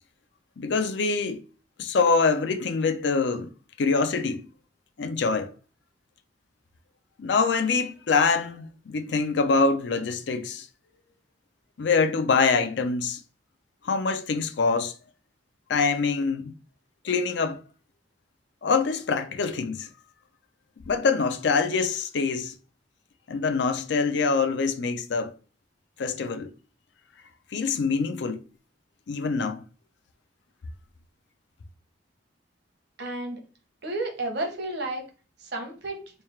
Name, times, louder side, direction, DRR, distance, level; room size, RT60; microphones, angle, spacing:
voice 1, 0.6-1.5 1.8-3.5 3.8-4.5 5.0-5.5 7.2-10.7 11.8-13.2 13.8-14.9 15.7-16.5 17.0-17.6 18.6-19.9 20.9-22.5 23.3-25.3 26.0-26.5 27.5-28.4 29.1-29.6, left 4 dB, 70° left, 0.5 m, -25 dB
voice 2, 33.0-33.4 33.8-35.1 35.4-36.0, right 2 dB, 65° right, 1.0 m, -31 dB
3.3 x 2.3 x 4.3 m
head